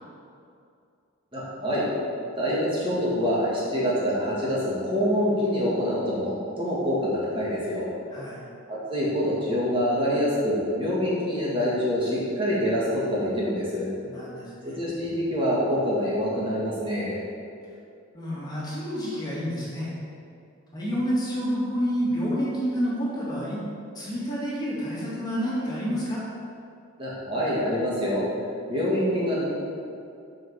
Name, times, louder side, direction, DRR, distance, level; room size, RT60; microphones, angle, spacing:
voice 1, 1.3-1.9 2.4-7.9 8.7-13.9 14.6-17.2 27.0-28.2 28.7-29.4, equal, 25° right, -7 dB, 2.0 m, -26 dB
voice 2, 8.1-8.4 14.0-14.7 18.1-19.9 20.7-23.6 23.9-26.2, equal, 20° left, -7 dB, 2.2 m, -29 dB
7.4 x 5.6 x 7.4 m, 2.4 s
head